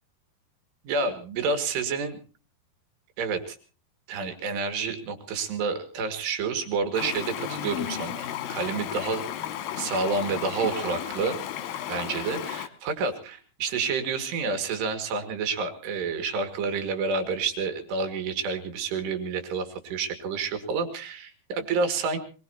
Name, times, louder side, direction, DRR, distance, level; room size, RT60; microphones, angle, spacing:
voice 1, 0.8-2.2 3.2-3.6 4.1-9.2 9.8-11.4 11.9-22.2, right 4 dB, 75° right, 7 dB, 4.0 m, -29 dB
Stream, 6.9-12.7, left 11 dB, 70° left, 2.3 m, -34 dB
23.0 x 21.0 x 2.9 m, 0.36 s
omnidirectional pair, 5.0 m